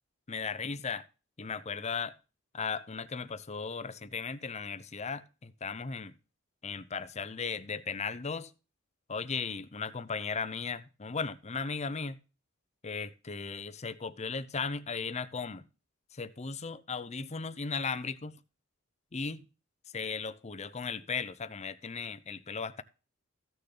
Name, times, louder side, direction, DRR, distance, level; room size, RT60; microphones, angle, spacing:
voice 1, 0.3-1.1 1.4-2.2 2.5-6.1 6.6-8.5 9.1-12.2 12.8-15.6 16.1-18.4 19.1-19.4 19.9-22.8, left 5 dB, 35° left, 0.7 m, -36 dB
15.0 x 6.7 x 3.8 m
head